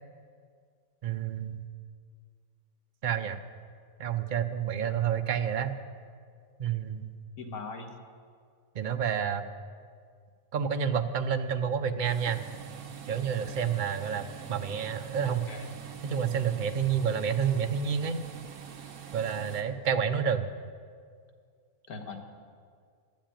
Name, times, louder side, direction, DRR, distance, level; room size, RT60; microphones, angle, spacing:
voice 1, 1.0-1.6 3.0-3.4 4.0-5.8 6.6-7.2 8.7-9.4 10.5-12.5 13.1-15.4 16.0-18.2 19.1-20.5, right 7 dB, 55° right, 8 dB, 0.5 m, -29 dB
voice 2, 7.4-7.9 15.5-15.7 19.7-19.8 21.9-22.2, left 4 dB, 85° left, 3 dB, 1.8 m, -40 dB
sound 1, 12.0-19.6, right 8 dB, 75° right, 1.4 m, -44 dB
12.5 x 7.5 x 8.9 m, 2.2 s
omnidirectional pair, 1.5 m